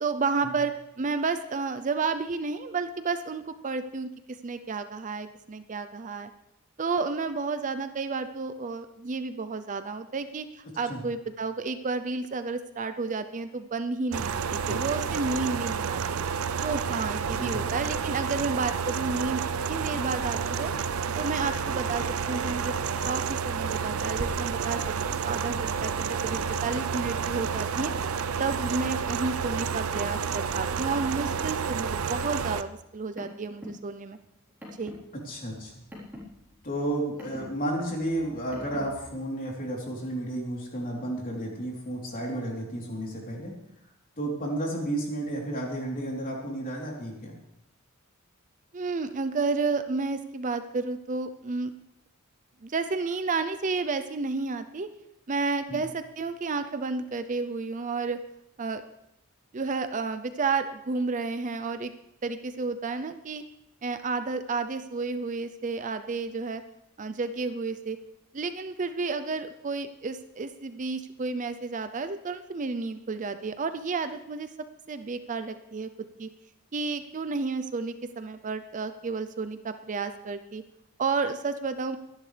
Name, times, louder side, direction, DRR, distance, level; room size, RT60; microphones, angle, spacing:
voice 1, 0.0-6.3 6.8-10.5 10.8-16.2 16.6-19.4 19.7-20.7 21.2-22.8 23.0-27.9 28.4-34.2 34.8-34.9 48.7-51.7 52.6-54.9 55.3-58.2 58.6-58.8 59.5-61.9 62.2-63.4 63.8-66.6 67.0-68.0 68.3-74.5 74.9-76.3 76.7-80.6 81.0-82.0, right 4 dB, 35° right, 10 dB, 0.5 m, -31 dB
sound 1, 14.1-32.6, right 6 dB, 90° right, 0.6 m, -30 dB
Car, 32.8-39.1, left 1 dB, 10° right, 3.9 m, -46 dB
voice 2, 35.3-35.8 36.6-43.5 44.2-47.4 55.7-55.8, right 1 dB, 40° left, -2 dB, 3.5 m, -32 dB
23.5 x 11.0 x 3.3 m, 0.84 s
head